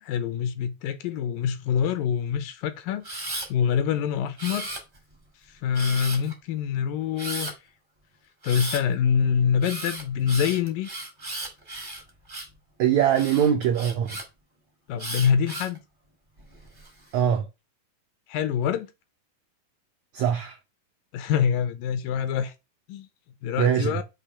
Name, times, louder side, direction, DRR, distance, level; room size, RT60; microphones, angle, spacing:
voice 1, 0.0-3.1 3.5-4.7 5.6-7.5 8.4-10.9 14.9-15.8 18.3-18.9 21.1-22.5 22.9-23.1 23.4-24.0, left 7 dB, 80° left, 2.1 m, -25 dB
Camera, 3.0-3.5 4.4-5.1 5.7-6.3 7.2-7.5 8.4-8.8 9.6-12.6 13.1-14.2 15.0-15.8 16.4-16.9, right 1 dB, 55° right, 0.5 m, -35 dB
voice 2, 12.8-14.2 17.1-17.5 20.1-20.6 23.6-24.0, right 9 dB, 85° right, 1.6 m, -22 dB
6.8 x 2.9 x 5.6 m
omnidirectional pair, 4.2 m